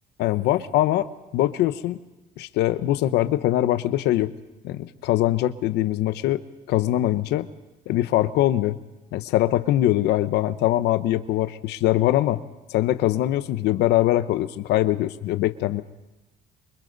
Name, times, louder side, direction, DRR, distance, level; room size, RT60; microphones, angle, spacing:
voice 1, 0.2-1.1 1.3-2.0 2.4-4.3 4.6-6.4 6.7-7.5 7.9-8.8 9.1-12.4 12.7-15.8, left 14 dB, 85° left, 12 dB, 1.0 m, -22 dB
29.0 x 25.0 x 4.0 m, 1.1 s
cardioid pair, 110°, 17 cm